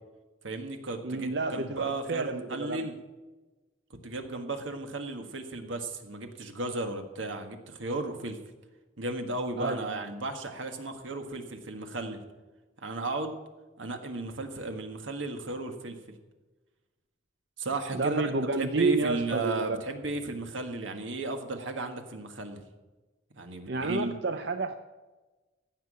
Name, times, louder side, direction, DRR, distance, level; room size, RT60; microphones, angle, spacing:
voice 1, 0.4-3.0 4.0-8.4 9.0-12.2 12.8-13.4 13.8-16.2 17.6-18.3 18.6-22.6 23.4-24.1, right 2 dB, 90° right, 5 dB, 1.6 m, -35 dB
voice 2, 1.0-2.9 9.6-10.0 17.9-19.8 23.7-24.7, right 3 dB, 65° right, 7 dB, 0.6 m, -30 dB
15.0 x 6.0 x 8.4 m, 1.2 s
head